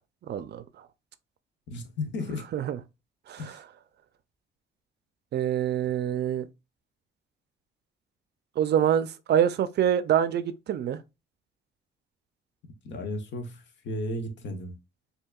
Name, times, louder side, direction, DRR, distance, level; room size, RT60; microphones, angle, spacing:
voice 1, 0.3-0.6 2.5-2.8 3.3-3.6 5.3-6.5 8.6-11.0, right 9 dB, 55° right, 0.5 m, -25 dB
voice 2, 1.7-2.5 3.4-3.6 12.8-14.7, left 1 dB, 65° left, 0.9 m, -34 dB
4.6 x 2.7 x 2.3 m
cardioid pair, 90°, 20 cm